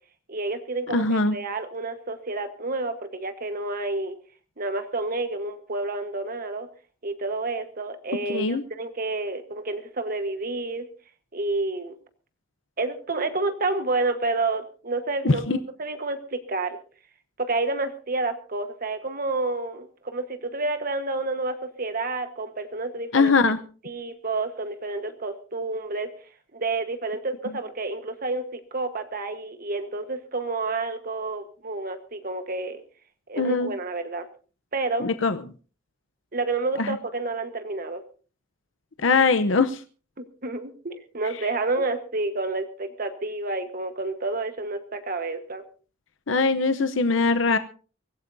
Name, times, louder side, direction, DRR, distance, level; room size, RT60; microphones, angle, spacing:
voice 1, 0.3-4.2 4.6-6.7 7.0-10.9 11.3-12.0 12.8-16.8 17.4-23.3 23.8-26.1 26.5-32.8 33.3-34.3 34.7-35.1 36.3-38.0 40.2-45.6, right 3 dB, 45° right, 8 dB, 1.3 m, -29 dB
voice 2, 0.9-1.4 8.3-8.6 15.2-15.6 23.1-23.6 33.4-33.7 35.0-35.4 36.8-37.0 39.0-39.8 46.3-47.6, left 4 dB, 70° left, 10 dB, 0.8 m, -21 dB
23.5 x 16.5 x 2.7 m, 0.38 s
head